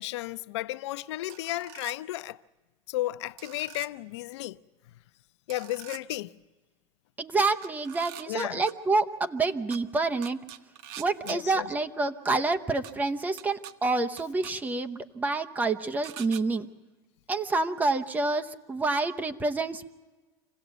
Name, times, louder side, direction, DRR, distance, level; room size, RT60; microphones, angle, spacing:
voice 1, 0.0-2.4 2.9-4.6 5.5-6.3 8.3-8.6 11.3-11.7, left 16 dB, 85° left, 0.6 m, -33 dB
sound 1, 1.3-1.9 3.4-3.9 5.5-6.0 7.6-8.7 9.7-9.8 10.2-11.4 12.8-12.9 13.4-13.7 14.2-14.5 16.0-16.4, right 12 dB, 65° right, 1.1 m, -44 dB
voice 2, 7.2-10.4 11.0-16.7 17.3-19.9, right 3 dB, 10° right, 0.8 m, -28 dB
26.5 x 17.0 x 8.1 m
supercardioid pair, 155°, 14 cm